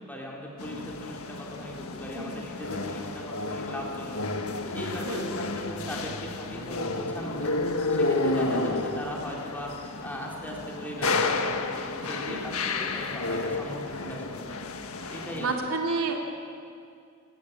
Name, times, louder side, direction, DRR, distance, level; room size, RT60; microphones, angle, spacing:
voice 1, 0.1-14.5 15.1-15.7, equal, 10° left, -2 dB, 4.0 m, -39 dB
sound 1, 0.6-15.5, left 3 dB, 75° left, 1.7 m, -31 dB
voice 2, 15.4-16.1, right 3 dB, 70° right, 1 dB, 3.0 m, -30 dB
29.0 x 16.5 x 8.7 m, 2.3 s
head